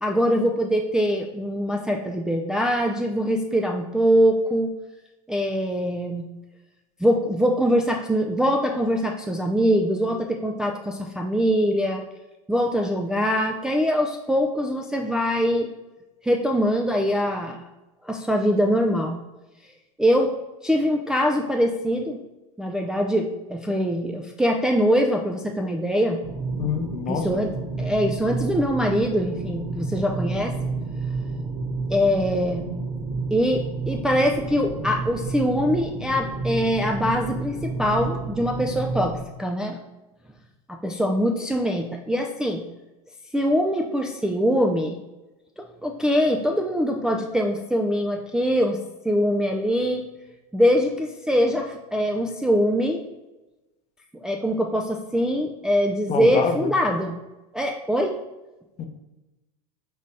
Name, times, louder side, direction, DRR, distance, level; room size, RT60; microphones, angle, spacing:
voice 1, 0.0-4.7 5.3-6.3 7.0-12.0 12.5-15.7 16.2-17.6 18.0-19.2 20.0-20.3 20.6-22.2 22.6-26.2 27.1-27.5 27.8-30.5 31.9-32.7 33.3-39.8 40.7-42.6 43.3-45.0 45.6-48.8 49.0-50.1 50.5-53.0 54.1-57.2 57.5-58.2, equal, 5° right, 1 dB, 0.3 m, -23 dB
sound 1, 26.2-39.2, right 3 dB, 45° right, 1.4 m, -30 dB
voice 2, 26.6-27.3 56.1-56.7 58.8-58.9, left 7 dB, 35° left, 6 dB, 0.6 m, -26 dB
5.3 x 2.7 x 3.3 m, 1.0 s
hypercardioid pair, 100°, 19 cm